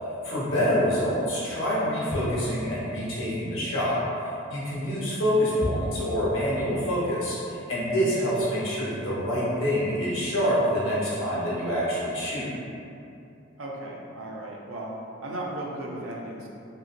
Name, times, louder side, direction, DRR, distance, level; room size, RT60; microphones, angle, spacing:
voice 1, 0.2-4.0 4.5-12.5, equal, 85° left, -8 dB, 0.9 m, -26 dB
voice 2, 13.6-15.0 15.2-16.5, right 1 dB, 85° right, -2 dB, 0.5 m, -36 dB
2.8 x 2.8 x 2.5 m, 2.7 s
head